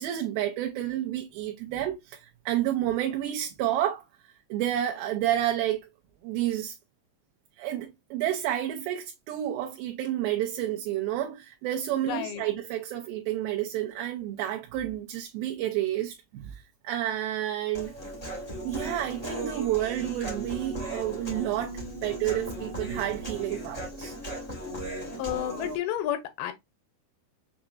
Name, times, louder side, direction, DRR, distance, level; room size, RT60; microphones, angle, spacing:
voice 1, 0.0-4.0 4.5-5.8 6.2-6.8 7.6-17.9 18.6-24.1, right 12 dB, 80° right, 2.2 m, -30 dB
voice 2, 12.1-12.4 25.2-26.5, left 11 dB, 80° left, 2.3 m, -31 dB
Human voice, 17.7-25.8, right 1 dB, 50° left, 0.4 m, -37 dB
6.9 x 2.8 x 2.5 m
omnidirectional pair, 4.6 m